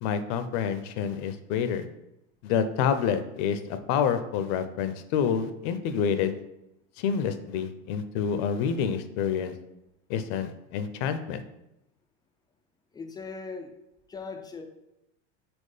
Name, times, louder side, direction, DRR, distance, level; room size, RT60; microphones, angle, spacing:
voice 1, 0.0-1.8 2.4-6.3 7.0-9.5 10.1-11.4, left 7 dB, 55° left, 10 dB, 0.6 m, -28 dB
voice 2, 12.9-13.7 14.1-14.6, left 4 dB, 10° left, 4 dB, 0.3 m, -39 dB
4.6 x 4.4 x 4.9 m, 0.87 s
supercardioid pair, 130°, 37 cm